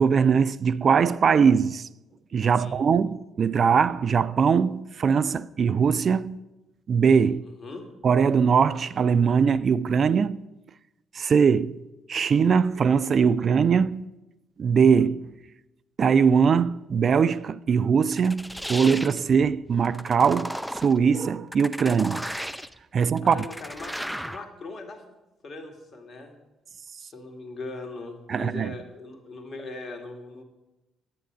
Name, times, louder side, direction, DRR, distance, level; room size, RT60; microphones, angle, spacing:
voice 1, 0.0-1.9 2.3-6.4 6.9-7.4 8.0-10.4 11.1-11.8 12.1-14.1 14.6-15.3 16.0-22.2 22.9-23.4 28.3-28.7, right 6 dB, 50° right, 0.4 m, -21 dB
sound 1, 18.1-19.2 19.8-21.0 21.5-22.8 23.2-24.5, equal, ahead, 0.6 m, -35 dB
voice 2, 23.0-24.0 24.2-25.0 25.4-26.3 27.0-30.4, left 3 dB, 45° left, 2.2 m, -40 dB
10.5 x 9.0 x 6.3 m
hypercardioid pair, 45°, 0 cm